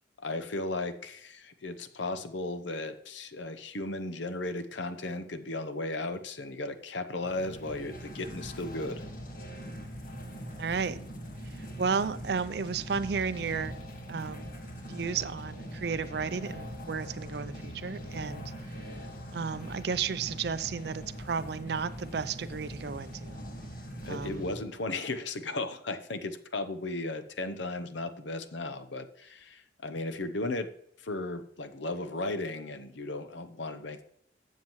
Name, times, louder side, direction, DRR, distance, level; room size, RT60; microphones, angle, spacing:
voice 1, 0.2-9.1 24.0-30.7 31.0-34.0, left 2 dB, 70° left, 10 dB, 0.8 m, -35 dB
sound 1, 7.2-24.6, equal, 45° left, 1.5 m, -42 dB
voice 2, 10.6-11.0 11.8-13.7 14.1-14.5 14.9-18.5 19.3-23.4 24.0-24.4, right 5 dB, 55° right, 13 dB, 0.4 m, -33 dB
13.0 x 7.4 x 3.1 m, 0.73 s
head